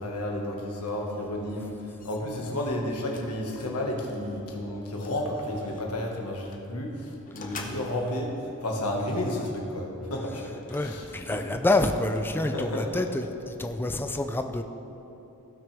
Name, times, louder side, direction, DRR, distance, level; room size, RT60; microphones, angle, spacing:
voice 1, 0.0-8.3 8.6-10.5 10.8-11.0 11.3-11.4 12.4-13.0, left 1 dB, 85° left, 0 dB, 1.5 m, -32 dB
sound 1, 2.0-2.5 3.1-3.8 4.0-4.3 4.7-5.9 6.5-6.6 7.3-8.2 8.7-9.9 10.5-12.6, left 3 dB, 40° left, 0.8 m, -47 dB
voice 2, 10.7-14.6, left 2 dB, 10° left, 6 dB, 0.4 m, -27 dB
16.0 x 6.1 x 3.4 m, 2.9 s
head